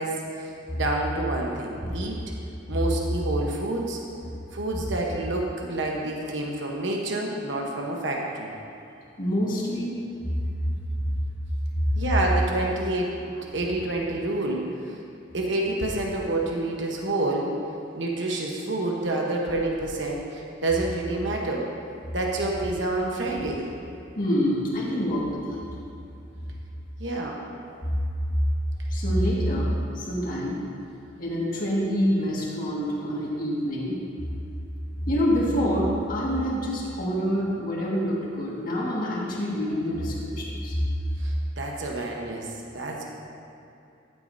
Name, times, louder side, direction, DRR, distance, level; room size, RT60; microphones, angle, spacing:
voice 1, 0.0-2.2 2.7-4.0 4.5-8.5 11.9-15.0 15.3-17.5 18.0-21.7 22.1-23.7 27.0-27.4 41.2-42.5 42.7-43.1, right 2 dB, 70° right, -1 dB, 1.1 m, -28 dB
voice 2, 9.2-10.0 11.0-11.1 11.8-12.0 24.2-25.6 27.8-27.9 28.9-30.6 31.2-34.0 35.0-40.8, equal, 45° left, -5 dB, 1.9 m, -26 dB
14.5 x 8.3 x 2.7 m, 2.7 s
head